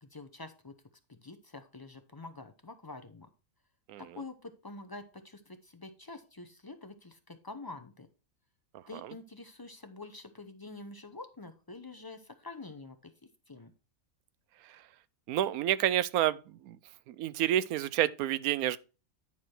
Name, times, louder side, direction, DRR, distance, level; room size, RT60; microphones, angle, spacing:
voice 1, 0.0-0.7 1.1-3.3 4.0-8.1 8.9-13.1 13.5-13.7, left 3 dB, 35° left, 0.3 m, -47 dB
voice 2, 15.3-16.4 16.7-16.8 17.1-18.8, right 12 dB, 80° right, 1.0 m, -28 dB
10.0 x 4.8 x 4.3 m
omnidirectional pair, 1.5 m